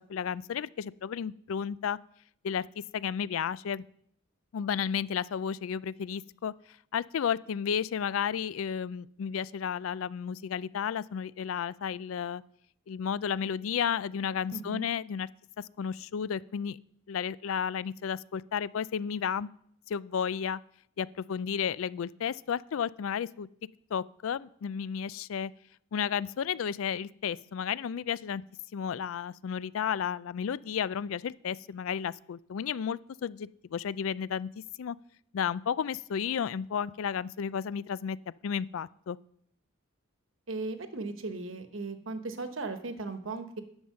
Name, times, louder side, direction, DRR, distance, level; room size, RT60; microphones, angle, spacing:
voice 1, 0.1-2.0 2.4-2.7 2.9-3.8 4.5-6.5 6.9-12.4 12.9-15.3 15.8-16.8 17.1-19.5 19.9-20.6 21.0-23.5 23.9-25.5 25.9-28.4 28.7-34.5 34.8-35.0 35.3-38.2 38.4-39.2, left 7 dB, 75° left, 19 dB, 0.4 m, -32 dB
voice 2, 14.5-14.9 40.5-43.6, right 3 dB, 70° right, 8 dB, 1.1 m, -37 dB
10.5 x 7.2 x 6.4 m, 0.67 s
head